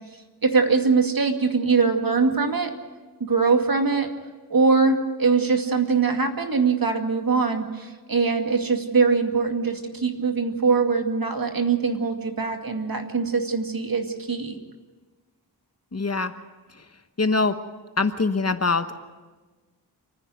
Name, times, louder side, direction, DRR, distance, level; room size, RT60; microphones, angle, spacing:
voice 1, 0.4-2.7 3.2-4.1 4.5-14.6, right 4 dB, 60° right, 4 dB, 2.3 m, -22 dB
voice 2, 15.9-16.3 16.8-16.9 17.2-17.6 18.0-19.0, left 3 dB, 40° left, 9 dB, 1.2 m, -23 dB
28.5 x 10.0 x 9.5 m, 1.3 s
wide cardioid pair, 75°, 40 cm